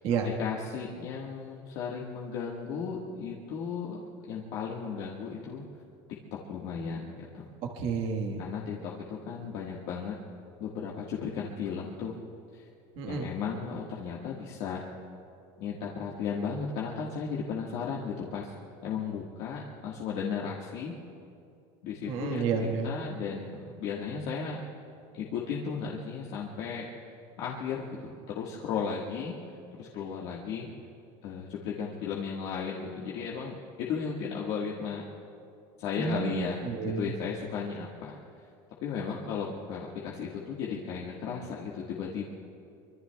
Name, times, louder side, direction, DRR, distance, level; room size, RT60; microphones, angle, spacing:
voice 1, 0.2-5.6 6.3-7.5 8.4-10.1 10.6-12.2 12.5-12.6 13.0-14.8 15.6-18.5 18.8-20.9 21.8-24.6 25.1-26.9 27.4-29.3 29.8-30.7 31.2-35.0 35.8-36.6 37.0-38.2 38.8-42.2, left 6 dB, 60° left, -4 dB, 1.6 m, -35 dB
voice 2, 7.6-8.4 13.0-13.3 22.1-22.9 36.0-37.1, right 5 dB, 55° right, 2 dB, 1.5 m, -31 dB
24.5 x 24.0 x 2.3 m, 2.5 s
cardioid pair, 160°, 11 cm